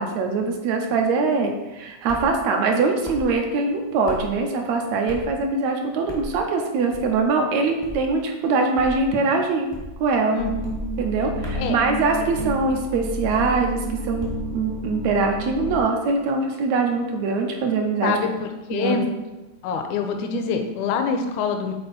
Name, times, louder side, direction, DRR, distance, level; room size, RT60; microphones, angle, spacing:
voice 1, 0.0-9.7 10.0-10.4 11.0-18.2 18.7-19.0 20.3-20.6, right 4 dB, 75° right, 3 dB, 1.9 m, -23 dB
sound 1, 2.1-2.3 3.0-3.3 4.0-4.3 5.1-5.4 6.1-6.3 6.9-7.2 7.8-8.1 8.7-9.0 9.7-10.0 10.6-10.9 11.4-11.7 12.4-12.6 13.3-13.6 14.2-14.5, left 1 dB, 5° left, 0.3 m, -36 dB
voice 2, 10.3-10.6 11.5-11.8 18.0-19.1 19.6-21.7, left 5 dB, 80° left, 5 dB, 2.0 m, -25 dB
sound 2, 10.4-15.8, equal, 45° right, 1.0 m, -31 dB
7.8 x 4.5 x 4.1 m, 1.1 s
omnidirectional pair, 3.5 m